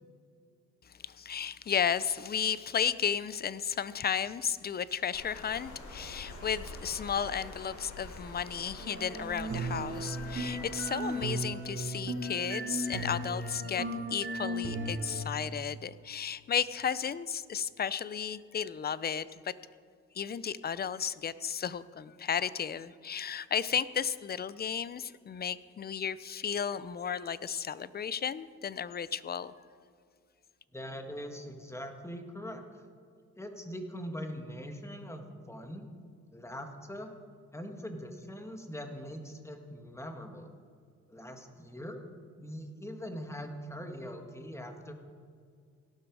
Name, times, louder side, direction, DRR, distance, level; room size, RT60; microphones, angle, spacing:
voice 1, 1.0-19.5 20.1-29.5, left 7 dB, 30° left, 17 dB, 0.5 m, -34 dB
Water, 5.1-11.3, left 2 dB, 75° left, 3.5 m, -46 dB
sound 1, 8.8-15.2, right 1 dB, 40° right, 2.7 m, -36 dB
voice 2, 30.7-32.8 33.3-35.9 36.3-37.1 37.5-40.5 41.1-42.0 42.4-44.9, equal, 10° left, 5 dB, 1.7 m, -42 dB
17.0 x 12.0 x 4.8 m, 2.2 s
cardioid pair, 90°, 30 cm